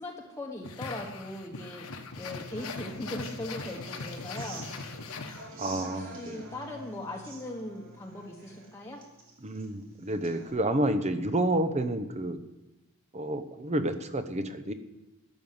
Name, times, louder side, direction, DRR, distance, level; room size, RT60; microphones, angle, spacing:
voice 1, 0.0-1.9 2.2-4.9 5.8-9.0, left 1 dB, 15° left, -1 dB, 1.1 m, -39 dB
sound 1, 0.6-5.9, left 3 dB, 70° left, 1.3 m, -40 dB
Human voice / Acoustic guitar, 2.5-10.5, right 2 dB, 65° right, 3.0 m, -48 dB
voice 2, 5.6-6.5 9.4-12.4 13.1-14.7, right 1 dB, 30° right, 10 dB, 0.8 m, -29 dB
12.5 x 7.1 x 9.5 m, 1.0 s
head